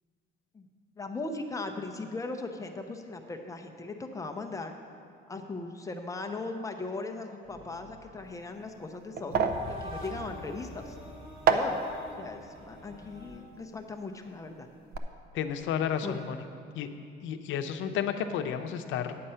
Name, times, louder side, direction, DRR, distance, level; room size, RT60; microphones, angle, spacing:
voice 1, 0.9-4.7 5.3-11.0 11.5-11.8 12.2-14.7 16.0-16.1, left 3 dB, 15° left, 4 dB, 0.5 m, -38 dB
sound 1, 7.4-13.4, left 1 dB, 25° right, 1.7 m, -45 dB
sound 2, 8.2-14.4 14.7-15.0, right 6 dB, 50° right, 0.6 m, -32 dB
voice 2, 15.3-16.4 16.7-16.9 17.2-19.2, left 8 dB, 85° left, 8 dB, 0.7 m, -31 dB
9.7 x 7.6 x 5.6 m, 2.3 s
cardioid pair, 160°, 20 cm